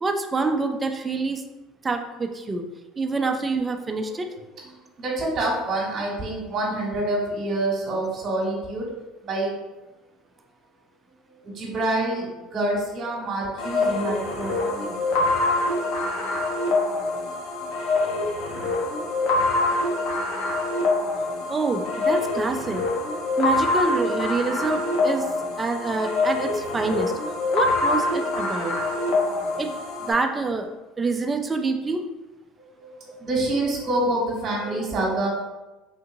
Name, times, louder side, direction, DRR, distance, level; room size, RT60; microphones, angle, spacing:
voice 1, 0.0-1.4 1.8-2.6 3.0-4.4 21.5-22.8 23.4-25.3 25.6-27.1 27.5-28.8 29.6-29.7 30.0-30.7 31.0-32.0 33.1-33.2, right 3 dB, 20° right, 5 dB, 0.4 m, -26 dB
voice 2, 4.6-8.9 9.2-9.5 11.4-15.2 32.8-35.3, right 2 dB, 40° right, -2 dB, 1.3 m, -27 dB
sound 1, 13.6-30.1, left 2 dB, 75° left, 0.7 m, -25 dB
3.6 x 2.7 x 2.6 m, 1.1 s
cardioid pair, 125°, 0 cm